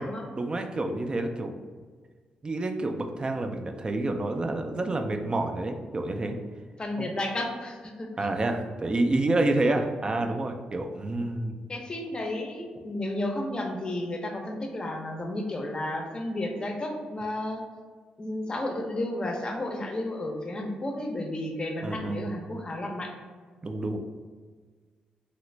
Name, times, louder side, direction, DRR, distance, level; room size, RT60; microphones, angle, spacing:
voice 1, 0.4-1.5 2.4-6.4 7.0-7.1 8.2-11.6 21.8-22.3 23.6-24.0, right 2 dB, 30° right, 5 dB, 0.4 m, -28 dB
voice 2, 6.8-8.1 10.2-10.3 11.7-17.6 18.2-23.1, left 1 dB, 30° left, 2 dB, 0.6 m, -32 dB
2.9 x 2.4 x 3.1 m, 1.5 s
cardioid pair, 80°, 3 cm